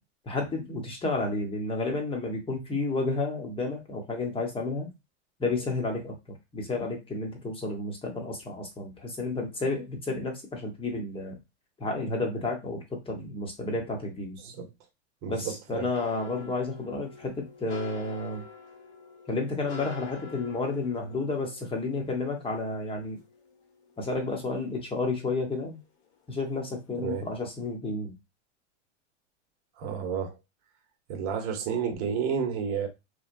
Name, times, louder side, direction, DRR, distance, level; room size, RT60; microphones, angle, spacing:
voice 1, 0.2-4.9 5.4-6.1 6.5-11.4 11.8-14.4 15.3-18.4 19.3-23.2 24.0-25.8 26.3-28.1, left 3 dB, 15° left, 1.1 m, -31 dB
voice 2, 15.2-15.8 27.0-27.3 29.8-30.4 31.1-32.9, right 7 dB, 45° right, 1.1 m, -31 dB
sound 1, 15.9-25.1 25.5-26.6 26.9-27.2 27.6-27.7, left 5 dB, 65° left, 1.3 m, -48 dB
3.4 x 2.2 x 2.6 m
hypercardioid pair, 110°, 36 cm